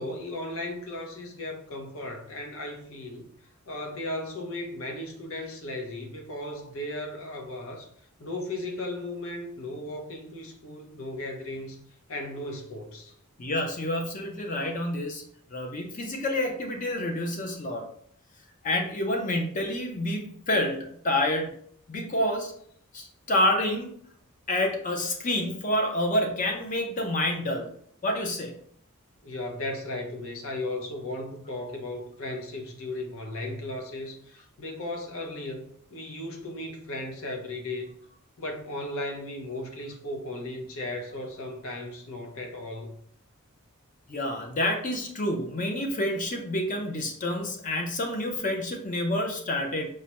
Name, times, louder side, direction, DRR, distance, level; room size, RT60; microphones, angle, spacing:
voice 1, 0.0-3.3 3.7-7.9 8.2-11.8 12.1-13.1 29.2-35.6 35.9-37.9 38.4-42.9, left 1 dB, 65° left, 2 dB, 0.7 m, -36 dB
voice 2, 13.4-15.2 15.5-17.9 18.6-21.5 21.9-22.5 22.9-24.0 24.5-27.7 28.0-28.6 44.1-49.9, left 1 dB, 35° left, 3 dB, 0.5 m, -28 dB
4.8 x 2.1 x 2.9 m, 0.64 s
head